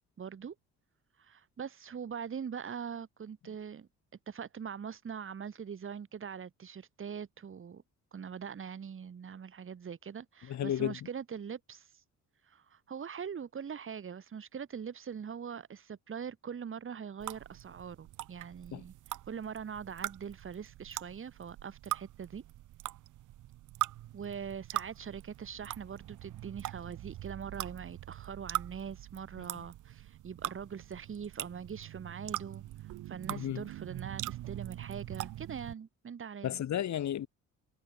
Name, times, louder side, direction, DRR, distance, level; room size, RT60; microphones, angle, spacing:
voice 1, 0.2-0.5 1.2-3.9 4.3-7.8 8.1-12.0 12.4-18.9 19.3-22.4 24.1-36.6, right 7 dB, 45° right, 2.7 m, -42 dB
voice 2, 10.5-11.1 18.7-18.8 33.4-33.6 36.4-37.3, left 11 dB, 65° left, 3.1 m, -33 dB
sound 1, 17.2-35.7, right 15 dB, 80° right, 1.7 m, -42 dB
cardioid pair, 90°, 30 cm